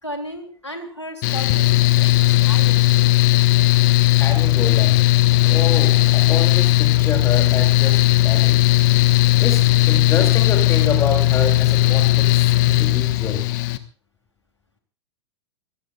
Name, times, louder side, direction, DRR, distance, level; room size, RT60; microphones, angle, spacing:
voice 1, 0.0-1.7 2.0-3.1, equal, 90° left, 4 dB, 3.4 m, -34 dB
Mechanical fan, 1.2-13.8, left 17 dB, 45° left, 1.4 m, -16 dB
voice 2, 4.2-5.0 5.4-8.6 9.4-13.5, left 5 dB, 20° left, 3 dB, 3.0 m, -27 dB
26.0 x 19.0 x 2.5 m, 0.34 s
figure-of-eight pair, 95°, 14 cm